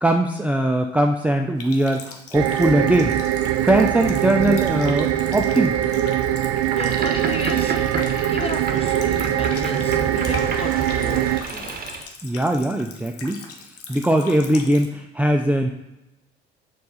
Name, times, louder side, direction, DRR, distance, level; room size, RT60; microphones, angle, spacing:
voice 1, 0.0-3.1 3.6-5.8 12.2-13.4 13.9-15.7, right 1 dB, 5° right, 3 dB, 0.5 m, -20 dB
Water tap faucet, 1.6-14.9, left 4 dB, 50° left, 1.2 m, -40 dB
sound 1, 2.3-11.4, right 12 dB, 55° right, 0.5 m, -22 dB
voice 2, 6.7-7.8 8.3-11.8, left 3 dB, 20° left, 8 dB, 0.8 m, -34 dB
Boat Water vehicle, 6.7-12.0, right 4 dB, 30° right, 1.0 m, -31 dB
6.9 x 3.9 x 4.9 m, 0.95 s
hypercardioid pair, 60°, 30 cm